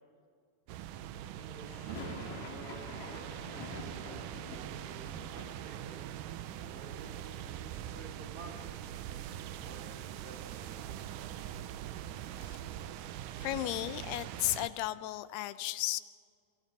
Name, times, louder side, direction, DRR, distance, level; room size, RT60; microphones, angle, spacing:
sound 1, 0.7-13.2, right 2 dB, 60° right, 6.5 m, -59 dB
sound 2, 0.7-14.7, right 11 dB, 85° right, 1.8 m, -43 dB
voice 1, 1.3-4.3 4.5-6.0 6.7-11.0, right 3 dB, 40° right, 1 dB, 3.3 m, -53 dB
sound 3, 1.7-7.6 7.9-8.7 9.0-9.1 9.3-11.5, left 3 dB, 50° left, 3.9 m, -49 dB
voice 2, 13.4-16.0, left 15 dB, 85° left, 14 dB, 2.7 m, -34 dB
28.0 x 24.0 x 4.1 m, 2.1 s
omnidirectional pair, 4.6 m